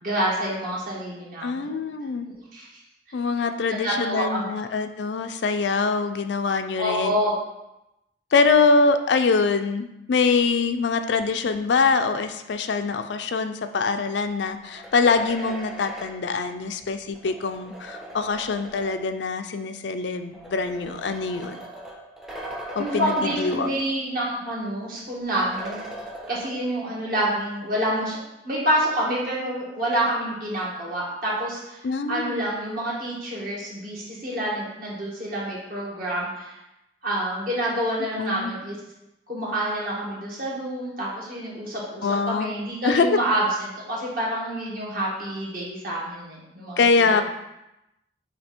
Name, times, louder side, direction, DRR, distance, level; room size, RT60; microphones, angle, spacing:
voice 1, 0.0-1.7 2.3-2.7 3.7-4.5 6.8-7.3 22.8-25.8 26.3-28.2 28.4-31.8 32.1-36.5 37.0-38.8 39.3-43.4 43.9-46.8 47.1-47.2, right 1 dB, 50° right, -6 dB, 2.0 m, -27 dB
voice 2, 1.4-2.3 3.1-7.2 8.3-21.6 22.8-23.7 31.8-32.4 38.2-38.5 42.0-42.5 42.8-43.2 46.8-47.2, left 4 dB, 75° left, 8 dB, 0.4 m, -24 dB
sound 1, 14.5-19.2 20.1-24.3 24.6-24.7 25.4-26.9, right 1 dB, ahead, 0.6 m, -39 dB
7.4 x 2.8 x 4.4 m, 0.90 s
head